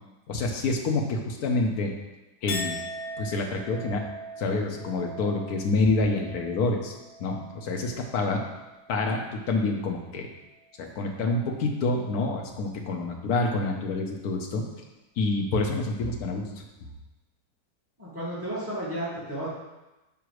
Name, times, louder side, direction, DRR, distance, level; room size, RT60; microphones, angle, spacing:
voice 1, 0.3-1.9 2.4-2.8 3.2-4.0 4.4-6.9 7.2-8.4 8.9-10.3 10.8-14.6 15.2-16.6, left 3 dB, 70° left, 2 dB, 1.4 m, -27 dB
Chink clink, 2.5-9.0 9.4-10.0, left 1 dB, 85° left, 1.5 m, -41 dB
voice 2, 18.0-19.5, right 1 dB, 10° right, -8 dB, 2.2 m, -33 dB
6.0 x 5.4 x 4.8 m, 1.0 s
omnidirectional pair, 1.7 m